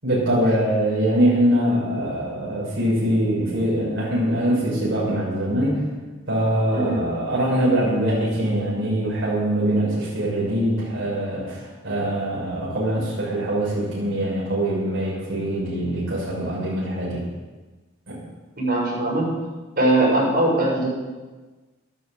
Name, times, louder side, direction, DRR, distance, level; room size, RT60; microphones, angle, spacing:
voice 1, 0.0-5.8 6.3-17.2 18.1-18.2, right 1 dB, 70° right, -7 dB, 6.3 m, -23 dB
voice 2, 6.7-7.0 18.6-19.3 19.8-20.9, right 1 dB, 50° right, -4 dB, 6.8 m, -20 dB
12.5 x 12.5 x 8.1 m, 1.3 s
head